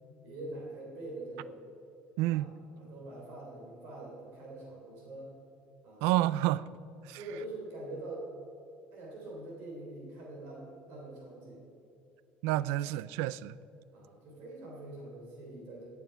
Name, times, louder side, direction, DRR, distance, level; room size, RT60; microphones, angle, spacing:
voice 1, 0.2-1.6 2.3-2.4 2.7-5.3 5.8-6.0 7.1-8.3 8.9-11.6 13.9-15.9, right 2 dB, 65° right, 3.3 m, -44 dB
voice 2, 2.2-2.6 6.0-6.7 7.0-7.2 12.4-13.6, right 15 dB, 85° right, 0.3 m, -29 dB
16.5 x 7.2 x 5.7 m
cardioid pair, 155°, 4 cm